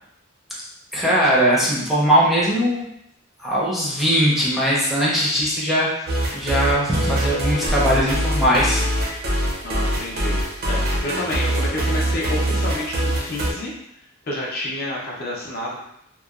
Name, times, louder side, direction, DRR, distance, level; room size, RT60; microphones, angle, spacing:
voice 1, 0.9-2.9 3.4-6.1 6.3-8.8, equal, ahead, -7 dB, 0.5 m, -20 dB
sound 1, 6.1-13.5, right 1 dB, 50° right, 0.5 m, -23 dB
voice 2, 9.6-10.4 10.6-13.7 14.3-15.8, left 1 dB, 50° left, -3 dB, 0.5 m, -29 dB
2.9 x 2.0 x 2.3 m, 0.79 s
head